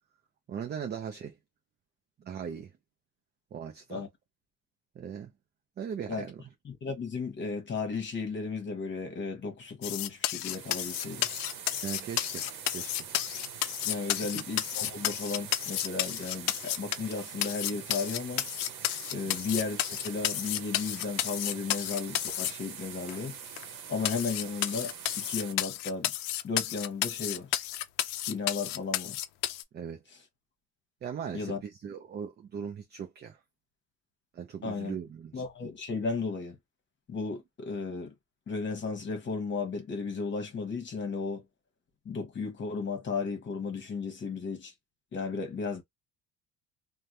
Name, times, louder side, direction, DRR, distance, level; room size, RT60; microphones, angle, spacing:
voice 1, 0.5-1.4 2.2-2.7 3.5-4.0 5.0-5.3 5.8-6.4 11.8-13.1 14.3-14.4 19.2-19.4 29.7-30.0 31.0-33.4 34.3-35.4, right 7 dB, 30° right, 0.5 m, -39 dB
voice 2, 6.6-11.3 13.8-18.5 19.1-23.4 23.9-26.1 26.4-27.5 28.3-29.2 31.3-31.6 34.6-35.0 35.3-36.6 37.1-38.1 38.5-41.4 42.0-44.7 45.1-45.8, left 4 dB, 35° left, 1.1 m, -34 dB
sound 1, 9.8-17.1 17.4-22.5 23.1-23.2 23.6-23.7 24.0-29.6, left 14 dB, 90° left, 0.5 m, -32 dB
sound 2, 10.5-25.5, right 8 dB, 90° right, 0.9 m, -44 dB
3.2 x 2.2 x 2.6 m
cardioid pair, 120°, 32 cm